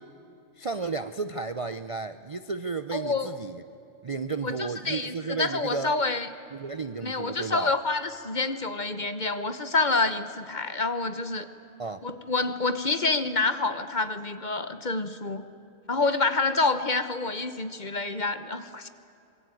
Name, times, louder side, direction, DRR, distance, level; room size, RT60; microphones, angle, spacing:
voice 1, 0.6-3.6 4.0-5.9 6.5-7.7 11.8-12.0, right 4 dB, 35° right, 11 dB, 0.6 m, -33 dB
voice 2, 2.9-3.4 4.4-6.3 7.0-11.5 12.0-15.4 15.9-18.9, left 3 dB, 35° left, 11 dB, 1.2 m, -27 dB
25.5 x 22.0 x 9.2 m, 2.8 s
omnidirectional pair, 1.4 m